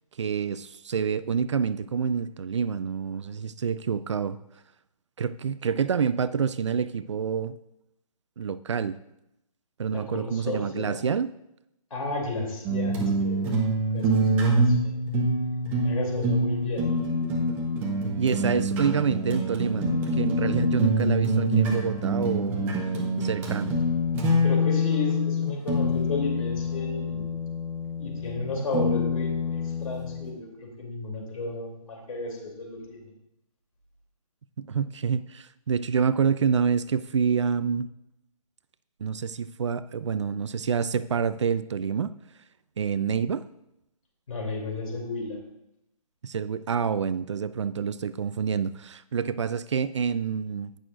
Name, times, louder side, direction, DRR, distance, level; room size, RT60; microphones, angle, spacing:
voice 1, 0.2-4.4 5.2-7.6 8.4-9.0 9.8-11.3 18.2-22.8 23.2-23.7 34.6-37.9 39.0-42.1 42.8-43.5 46.2-50.7, right 6 dB, 50° right, 16 dB, 0.4 m, -27 dB
voice 2, 9.9-11.0 11.9-14.9 15.8-16.8 24.4-27.3 28.0-33.1 44.3-45.4, left 2 dB, 65° left, 0 dB, 3.1 m, -33 dB
sound 1, 12.6-30.3, equal, 10° right, 0.6 m, -26 dB
18.0 x 6.3 x 2.5 m, 0.84 s
hypercardioid pair, 160°, 19 cm